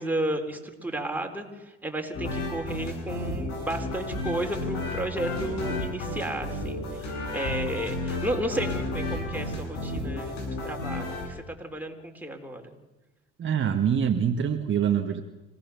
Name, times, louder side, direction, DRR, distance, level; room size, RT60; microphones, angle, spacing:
voice 1, 0.0-12.7, right 1 dB, 5° right, 2 dB, 3.8 m, -33 dB
sound 1, 2.1-11.3, left 2 dB, 85° left, 7.8 m, -32 dB
voice 2, 13.4-15.2, right 8 dB, 40° right, 5 dB, 1.5 m, -25 dB
25.5 x 18.0 x 7.0 m, 1.1 s
supercardioid pair, 90°, 30 cm